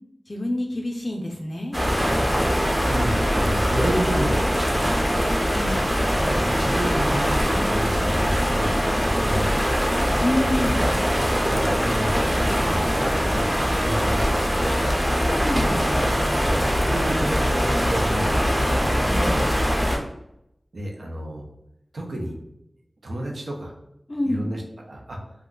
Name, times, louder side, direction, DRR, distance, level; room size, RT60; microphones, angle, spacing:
voice 1, 0.3-1.8 5.5-5.9 10.2-10.8 15.0-15.8 19.0-19.4 24.1-24.4, left 1 dB, 40° left, 1 dB, 0.4 m, -27 dB
sound 1, 1.7-20.0, equal, 15° right, 0.7 m, -22 dB
voice 2, 2.8-5.4 6.4-8.8 9.1-10.1 11.5-13.1 13.3-13.5 13.8-15.0 16.4-18.8 20.7-21.4 21.9-22.3 23.0-23.7 24.3-24.6 24.9-25.2, right 1 dB, 85° right, 0 dB, 0.6 m, -31 dB
sound 2, 15.6-17.9, right 1 dB, 45° right, 0.4 m, -36 dB
2.4 x 2.2 x 3.7 m, 0.79 s
wide cardioid pair, 65°, 0 cm